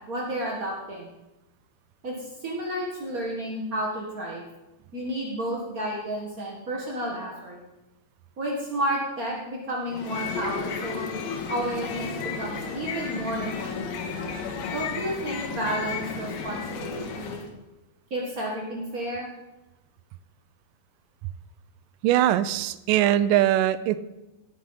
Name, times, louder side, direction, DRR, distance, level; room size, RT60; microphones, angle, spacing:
voice 1, 0.1-1.1 2.0-4.4 4.9-7.6 8.4-11.1 11.5-14.0 14.7-17.4 18.1-19.3, right 1 dB, 50° right, -3 dB, 1.0 m, -31 dB
sound 1, 9.9-17.5, left 5 dB, 70° left, 3.0 m, -33 dB
voice 2, 22.0-24.0, right 12 dB, 85° right, 14 dB, 2.0 m, -21 dB
18.0 x 6.5 x 5.6 m, 0.99 s
omnidirectional pair, 4.4 m